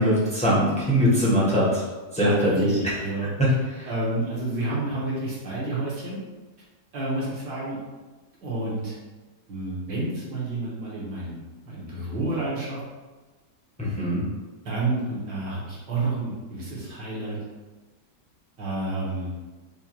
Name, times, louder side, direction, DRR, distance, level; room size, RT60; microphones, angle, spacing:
voice 1, 0.0-1.8 2.1-2.7 3.4-3.9 13.8-14.2, equal, 5° left, -7 dB, 0.5 m, -22 dB
voice 2, 2.2-3.3 3.9-6.2 6.9-7.8 8.4-9.0 9.5-12.8 14.6-17.4 18.6-19.3, right 2 dB, 75° right, -7 dB, 1.9 m, -30 dB
5.4 x 2.2 x 2.9 m, 1.3 s
omnidirectional pair, 1.9 m